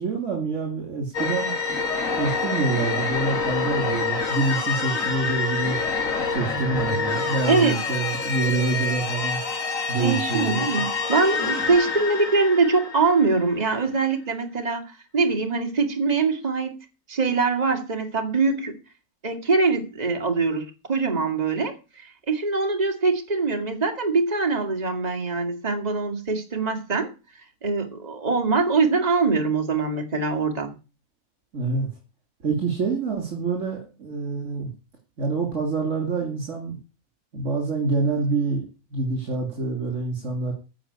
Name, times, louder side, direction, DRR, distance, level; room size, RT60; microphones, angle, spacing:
voice 1, 0.0-1.5 2.2-5.8 6.3-9.4 9.9-10.8 31.5-31.9 32.4-34.7 35.2-36.8 37.3-40.5, right 4 dB, 55° right, 3.2 m, -26 dB
sound 1, 1.1-13.7, left 4 dB, 65° left, 2.3 m, -27 dB
voice 2, 10.0-16.7 17.1-18.7 19.2-21.8 22.0-27.1 27.6-30.7, right 4 dB, 30° right, 2.1 m, -23 dB
15.5 x 5.2 x 8.5 m
omnidirectional pair, 1.5 m